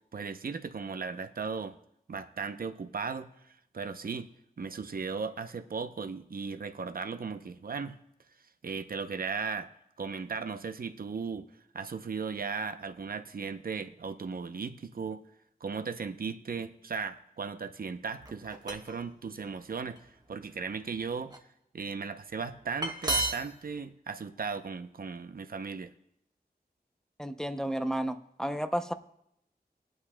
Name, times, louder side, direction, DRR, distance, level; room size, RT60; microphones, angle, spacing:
voice 1, 0.1-1.8 2.1-4.3 4.6-8.0 8.6-9.7 10.0-11.5 11.7-15.2 15.6-21.3 21.7-25.9, right 5 dB, 65° right, 9 dB, 0.6 m, -37 dB
sound 1, 18.2-19.0 19.7-20.0 20.6-21.4 22.5-22.6 22.8-23.6, right 2 dB, 25° right, 1.2 m, -32 dB
voice 2, 27.2-28.9, right 1 dB, 5° left, 8 dB, 0.5 m, -32 dB
21.5 x 8.6 x 2.2 m, 0.78 s
wide cardioid pair, 80°, 16 cm